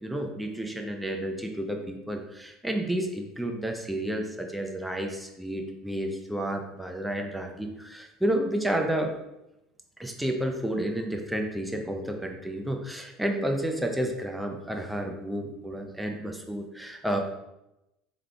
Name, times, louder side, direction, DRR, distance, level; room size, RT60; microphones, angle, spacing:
voice 1, 0.0-9.1 10.0-17.2, right 1 dB, 5° right, 3 dB, 0.7 m, -31 dB
3.6 x 3.4 x 3.4 m, 0.91 s
hypercardioid pair, 80°, 0 cm